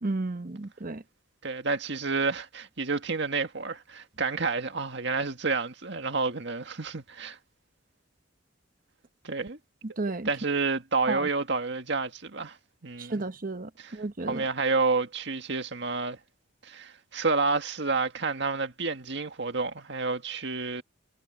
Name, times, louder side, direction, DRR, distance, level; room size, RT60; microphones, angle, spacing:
voice 1, 0.0-1.0 9.8-10.3 11.1-11.3 13.0-14.5, right 2 dB, 45° right, 1.0 m, -33 dB
voice 2, 1.4-7.4 9.2-9.6 10.3-12.6 12.8-13.2 13.8-13.9 14.3-16.2 16.6-20.8, right 4 dB, 65° right, 1.9 m, -29 dB
head